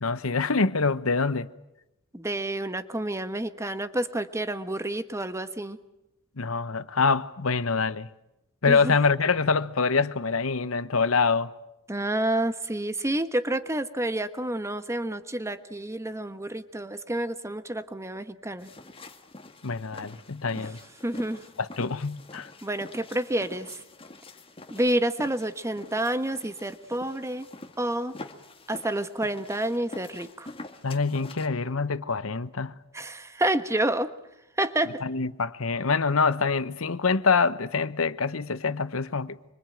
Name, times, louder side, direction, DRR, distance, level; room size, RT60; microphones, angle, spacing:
voice 1, 0.0-1.5 6.4-8.1 8.6-11.5 19.6-20.8 21.6-22.5 30.8-32.7 35.0-39.4, left 4 dB, 85° left, 1.0 m, -25 dB
voice 2, 2.1-5.8 8.7-8.9 11.9-18.7 20.6-20.7 21.0-21.4 22.6-23.8 24.7-27.5 27.8-28.1 28.7-30.5 32.9-34.1 34.6-35.0, right 1 dB, 15° right, 1.2 m, -29 dB
sound 1, 18.6-31.5, left 2 dB, 25° left, 2.0 m, -46 dB
25.5 x 25.0 x 9.1 m
head